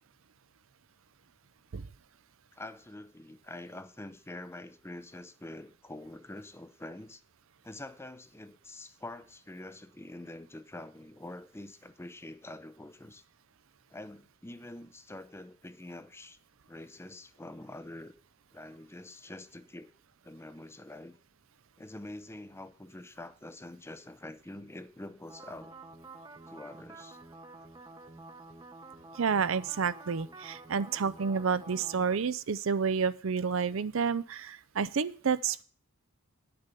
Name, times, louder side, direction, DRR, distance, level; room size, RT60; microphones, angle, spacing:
voice 1, 2.5-7.2 7.6-13.2 13.9-16.4 16.7-18.1 18.5-19.9 20.2-21.2 21.8-25.8 26.5-27.2, left 1 dB, 10° left, 0.6 m, -46 dB
sound 1, 25.3-32.1, right 2 dB, 20° right, 0.9 m, -49 dB
voice 2, 29.1-35.6, right 6 dB, 65° right, 0.5 m, -30 dB
9.9 x 6.8 x 6.8 m
head